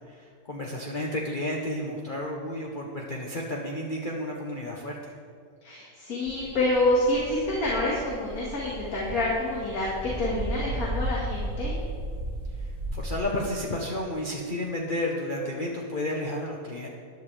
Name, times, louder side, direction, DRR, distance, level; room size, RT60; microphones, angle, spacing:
voice 1, 0.1-5.1 12.6-12.7 12.9-16.9, left 1 dB, 40° left, -2 dB, 1.1 m, -32 dB
voice 2, 5.6-11.7, left 1 dB, 70° left, -5 dB, 2.3 m, -27 dB
sound 1, 6.3-13.2, right 1 dB, 35° right, 2.4 m, -34 dB
16.0 x 11.0 x 3.4 m, 2.2 s
omnidirectional pair, 1.6 m